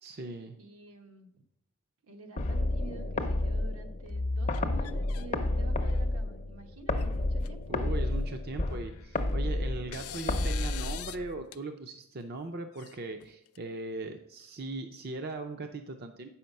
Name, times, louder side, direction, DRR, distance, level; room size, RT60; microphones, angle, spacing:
voice 1, 0.0-0.6 7.7-16.3, right 3 dB, 45° right, 6 dB, 0.5 m, -39 dB
voice 2, 0.6-1.3 2.0-7.8, right 3 dB, 80° right, 4 dB, 1.1 m, -48 dB
sound 1, 2.4-11.4, left 2 dB, 35° left, 0.6 m, -31 dB
sound 2, 4.5-5.3 5.7-6.2 7.0-7.1 7.4-7.5 8.8-9.4 9.9-11.2 11.5-11.6 12.7-13.6, left 14 dB, 90° left, 0.4 m, -44 dB
8.1 x 5.7 x 5.3 m, 0.78 s
head